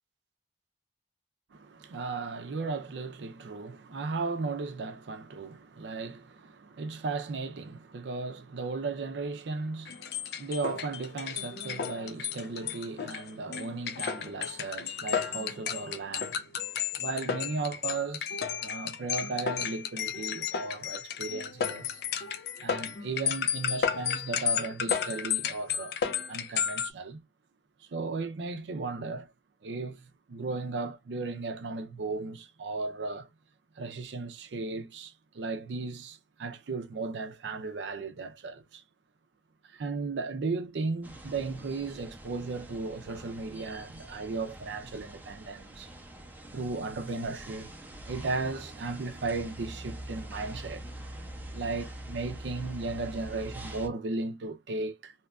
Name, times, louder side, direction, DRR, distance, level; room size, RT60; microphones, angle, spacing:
voice 1, 1.5-16.4 17.0-22.0 22.6-26.0 26.3-27.2 27.9-29.3 29.6-33.3 33.8-38.8 39.7-45.9 46.5-47.7 48.1-50.9 51.5-55.1, right 3 dB, 80° right, 0.4 m, -36 dB
sound 1, 9.9-26.9, left 7 dB, 65° left, 0.4 m, -33 dB
sound 2, 41.0-53.9, right 1 dB, 10° right, 0.5 m, -44 dB
2.8 x 2.2 x 2.3 m
head